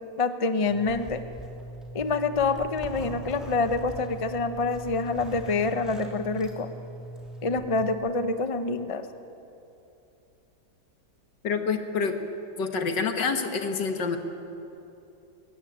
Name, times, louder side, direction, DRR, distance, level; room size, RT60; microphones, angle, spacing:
voice 1, 0.2-1.2 1.9-6.7 7.4-9.1, left 3 dB, 35° left, 9 dB, 0.5 m, -26 dB
Zipper (clothing), 0.6-7.9, right 1 dB, ahead, 3.1 m, -41 dB
voice 2, 11.4-12.1 12.6-14.2, left 5 dB, 70° left, 5 dB, 2.1 m, -27 dB
21.5 x 17.0 x 8.7 m, 2.8 s
omnidirectional pair, 2.0 m